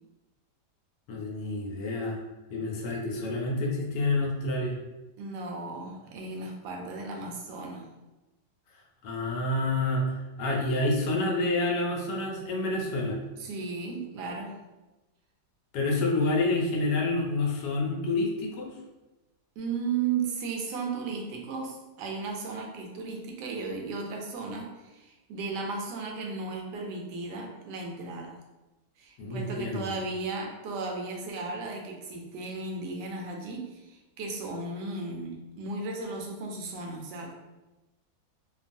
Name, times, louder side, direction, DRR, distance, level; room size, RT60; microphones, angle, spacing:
voice 1, 1.1-2.2 2.5-4.8 9.0-13.2 15.7-18.7 29.2-29.8, left 2 dB, 80° left, -1 dB, 1.2 m, -28 dB
voice 2, 5.2-7.9 13.4-14.6 19.6-28.4 29.0-37.3, right 4 dB, 80° right, 0 dB, 1.2 m, -35 dB
3.0 x 2.2 x 2.5 m, 1.1 s
omnidirectional pair, 1.8 m